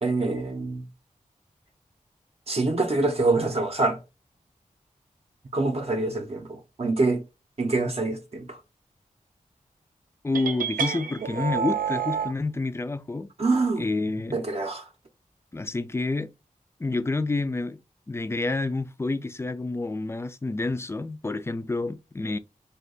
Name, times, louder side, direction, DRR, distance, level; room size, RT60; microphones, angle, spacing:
voice 1, 0.0-0.8 2.5-4.0 5.5-6.5 6.8-7.2 7.6-8.6 13.4-13.8 14.3-14.8, right 3 dB, 45° right, 0.6 m, -25 dB
voice 2, 10.2-13.3 13.8-14.4 15.5-16.3 16.8-17.8 18.1-22.4, left 3 dB, 20° left, 0.3 m, -28 dB
sound 1, 10.3-12.3, right 7 dB, 85° right, 0.5 m, -28 dB
2.8 x 2.2 x 3.8 m
wide cardioid pair, 80°, 14 cm